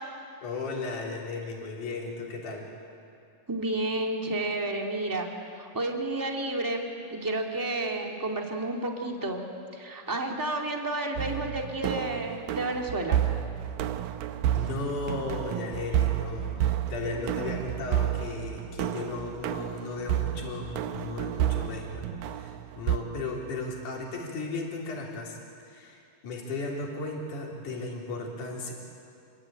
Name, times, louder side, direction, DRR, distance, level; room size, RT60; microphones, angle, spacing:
voice 1, 0.4-2.7 14.5-25.4 25.6-28.7, left 3 dB, 65° left, -2 dB, 5.0 m, -35 dB
voice 2, 3.5-5.3 5.6-9.4 9.7-13.2, right 2 dB, 5° right, 1 dB, 1.7 m, -31 dB
sound 1, 11.2-23.0, right 11 dB, 90° right, 2.6 m, -30 dB
28.0 x 23.5 x 9.0 m, 2.5 s
omnidirectional pair, 3.9 m